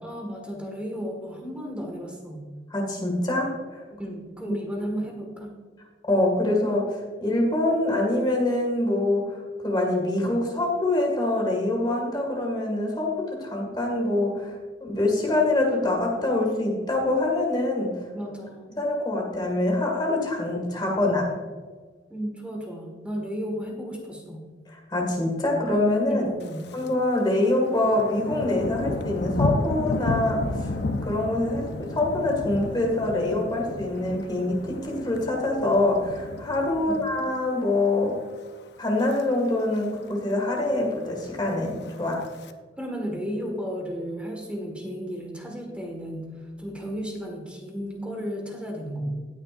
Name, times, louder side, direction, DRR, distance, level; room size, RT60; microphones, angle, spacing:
voice 1, 0.0-2.5 3.9-5.5 18.1-18.7 22.1-24.4 26.1-26.6 36.8-37.0 42.8-49.1, equal, 5° right, 0 dB, 1.8 m, -34 dB
voice 2, 2.7-3.8 4.5-4.6 6.0-9.4 9.6-14.5 14.8-18.1 18.7-21.3 24.9-26.2 26.7-30.7 31.0-38.1 38.8-42.2, left 2 dB, 25° left, -1 dB, 2.0 m, -25 dB
Thunder, 26.4-26.9 27.2-37.6 38.0-38.3 38.8-39.2 39.5-39.6 39.7-39.8 40.2-40.8 41.6-42.5, left 2 dB, 70° left, 0.6 m, -32 dB
18.5 x 6.3 x 2.6 m, 1.4 s
head